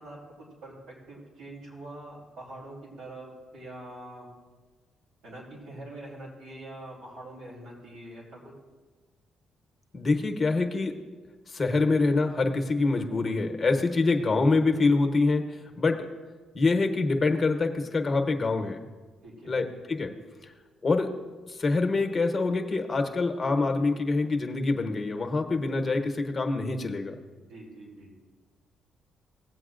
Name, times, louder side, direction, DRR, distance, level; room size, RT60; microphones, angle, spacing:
voice 1, 0.0-4.3 5.2-8.5 19.2-19.6 27.5-28.1, right 1 dB, 80° right, -3 dB, 3.0 m, -44 dB
voice 2, 9.9-11.0 11.5-16.1 16.5-18.8 19.5-20.1 20.4-20.5 20.8-21.1 21.5-27.1, left 3 dB, 30° left, 4 dB, 1.0 m, -25 dB
17.5 x 8.0 x 2.5 m, 1.4 s
cardioid pair, 90°, 0 cm